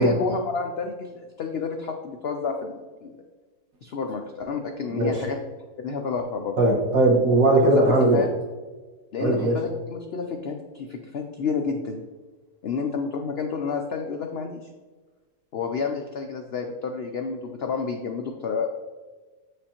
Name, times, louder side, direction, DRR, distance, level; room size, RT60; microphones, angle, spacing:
voice 1, 0.0-3.1 3.8-5.4 5.8-6.6 7.6-7.8 8.1-8.3 9.1-12.0 12.6-14.7 15.5-18.7, left 5 dB, 90° left, 3 dB, 0.5 m, -30 dB
voice 2, 4.9-5.2 6.6-8.2 9.2-9.6, right 2 dB, 60° right, -1 dB, 1.6 m, -19 dB
7.6 x 5.0 x 2.9 m, 1.3 s
omnidirectional pair, 1.7 m